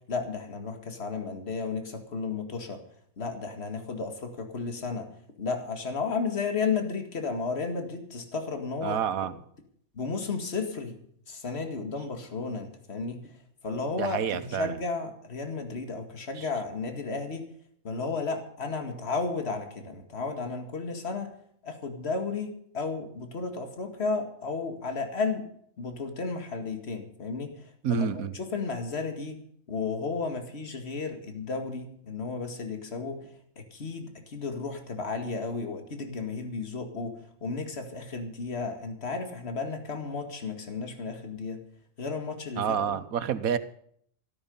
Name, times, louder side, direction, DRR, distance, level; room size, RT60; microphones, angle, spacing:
voice 1, 0.1-2.8 3.2-5.1 5.4-9.0 9.9-11.0 11.3-13.3 13.6-17.5 17.8-21.3 21.6-25.4 25.8-29.4 29.7-33.2 33.6-41.6 42.0-43.0, left 4 dB, 50° left, 6 dB, 2.3 m, -33 dB
voice 2, 8.8-9.3 13.9-14.8 16.4-16.5 27.8-28.3 42.6-43.6, right 8 dB, 85° right, 14 dB, 1.4 m, -28 dB
14.0 x 13.0 x 5.4 m, 0.65 s
omnidirectional pair, 1.4 m